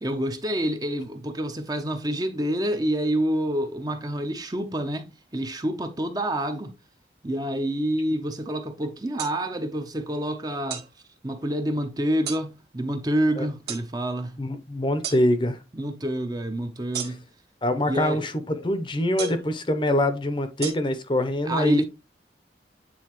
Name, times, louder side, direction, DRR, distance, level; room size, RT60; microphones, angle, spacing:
voice 1, 0.0-6.8 7.2-10.9 11.2-14.4 15.7-17.2 17.9-18.2 21.5-21.8, right 1 dB, 20° right, 0.6 m, -27 dB
sound 1, 9.2-9.4 10.7-10.9 12.3-12.4 13.7-13.9 15.0-15.2 16.9-17.4 19.2-19.5 20.6-20.7, right 6 dB, 60° right, 1.6 m, -32 dB
voice 2, 14.4-15.6 17.0-17.1 17.6-21.8, left 1 dB, 25° left, 0.7 m, -24 dB
8.7 x 4.1 x 3.0 m
head